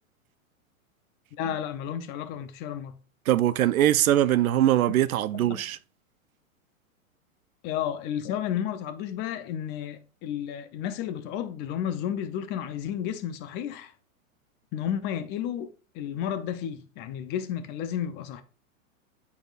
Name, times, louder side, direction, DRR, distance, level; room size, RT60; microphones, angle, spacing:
voice 1, 1.4-3.0 5.3-5.7 7.6-13.9 14.7-18.4, left 9 dB, 25° left, 0.5 m, -32 dB
voice 2, 3.3-5.8, right 12 dB, 80° right, 0.6 m, -22 dB
10.0 x 4.2 x 2.4 m
hypercardioid pair, 125°, 42 cm